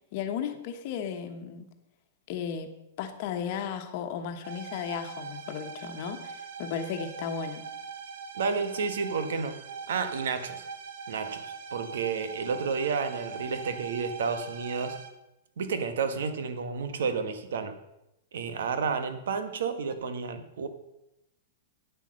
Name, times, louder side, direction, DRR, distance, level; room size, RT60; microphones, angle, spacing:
voice 1, 0.1-1.7 2.3-2.7 3.0-7.6, left 7 dB, 40° left, 7 dB, 1.2 m, -35 dB
sound 1, 4.4-15.1 19.9-20.0, right 6 dB, 60° right, 1.2 m, -41 dB
voice 2, 8.3-9.6 9.9-10.6 11.1-14.9 15.6-17.7 18.3-20.7, right 5 dB, 75° right, 10 dB, 1.4 m, -31 dB
9.2 x 8.3 x 6.4 m, 0.89 s
supercardioid pair, 170°, 0 cm